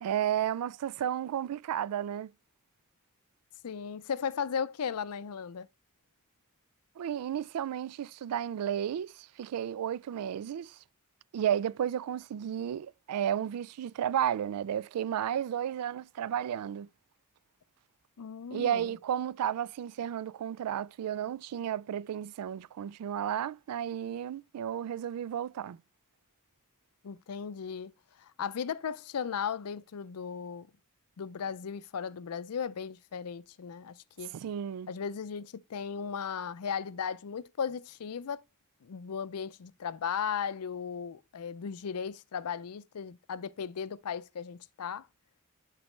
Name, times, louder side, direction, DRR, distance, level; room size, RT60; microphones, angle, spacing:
voice 1, 0.0-2.3 7.0-10.8 11.3-16.9 18.5-25.8 34.3-34.9, right 9 dB, 90° right, 0.3 m, -33 dB
voice 2, 3.6-5.7 18.2-19.0 27.0-27.9 28.2-30.7 31.2-34.3 34.9-38.4 38.8-45.1, left 7 dB, 85° left, 0.5 m, -36 dB
11.0 x 4.1 x 3.2 m
head